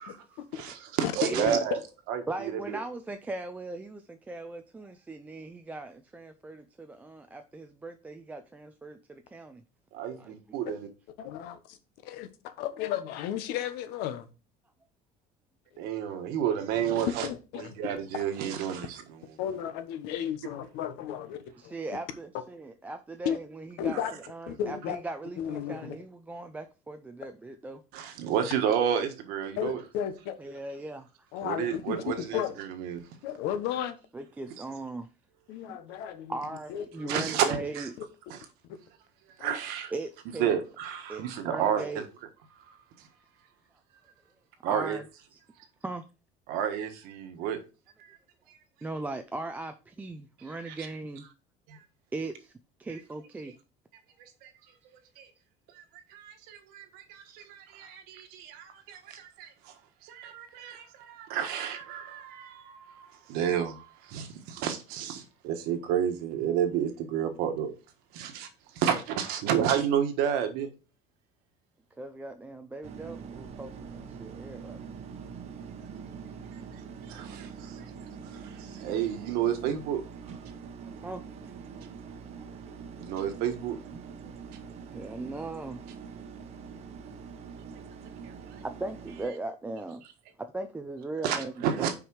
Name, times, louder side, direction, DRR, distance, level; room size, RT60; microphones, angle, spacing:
voice 1, 0.6-1.8 2.1-2.8 9.9-10.9 15.8-17.3 17.6-19.0 27.9-29.8 31.4-33.0 37.1-37.9 38.3-38.4 39.4-39.9 40.4-42.0 42.7-43.1 44.6-45.0 46.5-47.6 48.0-48.2 50.7-50.9 51.7-51.8 54.2-54.5 55.2-55.3 55.7-55.8 56.1-59.7 60.0-67.7 68.1-68.5 68.7-70.7 77.1-77.8 78.3-80.0 83.0-83.8 88.2-88.5 91.2-91.9, right 9 dB, 70° right, 1.4 m, -31 dB
voice 2, 1.2-1.5 2.3-9.6 10.2-10.3 21.6-24.0 24.3-27.8 30.4-31.1 34.1-35.1 35.7-35.8 36.3-37.9 39.9-40.5 41.1-42.1 44.7-45.0 45.3-45.4 45.8-46.0 48.8-51.3 52.1-52.5 52.8-53.5 72.0-74.8 77.1-77.4 80.8-81.2 82.4-82.5 84.9-86.0 88.6-90.0 90.4-91.9, right 2 dB, 10° right, 0.4 m, -39 dB
voice 3, 11.2-11.8 12.0-14.3 17.2-17.8 19.4-21.7 23.2-23.4 23.8-24.1 24.5-25.0 25.4-26.0 29.6-30.4 31.3-32.5 33.2-34.0 35.5-36.4 36.7-37.1 38.0-38.1 39.4-39.6, left 10 dB, 70° left, 1.1 m, -34 dB
sound 1, 72.8-89.3, right 6 dB, 40° right, 1.0 m, -44 dB
6.2 x 4.9 x 4.7 m
cardioid pair, 165°, 16 cm